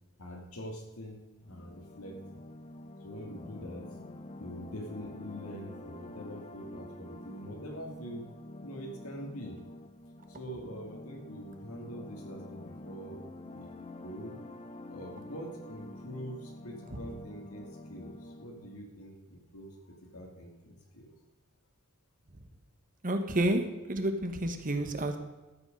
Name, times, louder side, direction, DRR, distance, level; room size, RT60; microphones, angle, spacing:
voice 1, 0.2-1.2 1.5-2.4 3.0-3.9 4.4-8.3 8.6-9.6 10.3-14.4 14.9-21.1, equal, 85° left, 1 dB, 2.7 m, -44 dB
sound 1, 1.4-18.8, left 2 dB, 30° left, 0.6 m, -47 dB
voice 2, 23.0-25.2, right 1 dB, 40° right, 7 dB, 1.2 m, -30 dB
13.0 x 8.2 x 5.4 m, 1.1 s
head